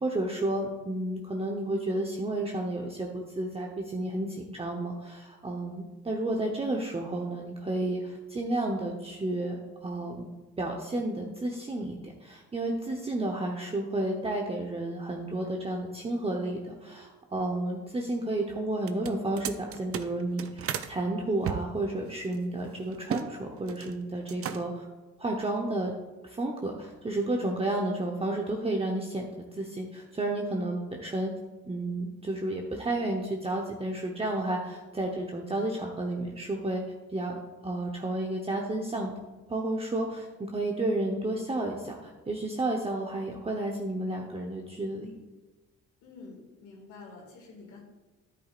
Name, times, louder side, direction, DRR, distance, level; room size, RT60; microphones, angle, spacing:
voice 1, 0.0-10.3 10.6-24.8 25.2-25.9 26.2-31.3 31.7-36.8 37.1-39.1 39.5-45.1, right 2 dB, 20° right, 0 dB, 0.9 m, -31 dB
sound 1, 18.8-20.9 21.4-23.3 23.6-24.0 24.3-24.9, right 8 dB, 50° right, 0.6 m, -36 dB
voice 2, 46.0-47.8, left 3 dB, 85° left, -2 dB, 2.2 m, -48 dB
10.0 x 8.4 x 2.5 m, 1.2 s
cardioid pair, 90°, 30 cm